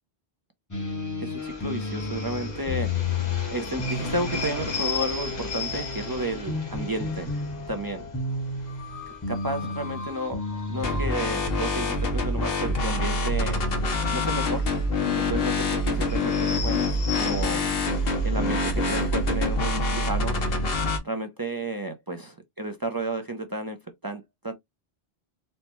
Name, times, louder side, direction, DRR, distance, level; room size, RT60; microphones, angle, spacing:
sound 1, 0.7-11.1, left 3 dB, 20° left, 0.9 m, -32 dB
voice 1, 1.2-2.9 3.5-7.3 7.7-8.0 9.3-10.4 10.7-13.6 14.1-14.7 15.3-17.6 18.2-20.4 21.0-23.8 24.0-24.5, right 1 dB, 35° right, 0.3 m, -32 dB
sound 2, 1.4-20.7, left 4 dB, 45° left, 0.9 m, -38 dB
sound 3, 10.8-21.0, left 2 dB, 70° left, 1.0 m, -25 dB
4.2 x 2.1 x 2.9 m
omnidirectional pair, 1.0 m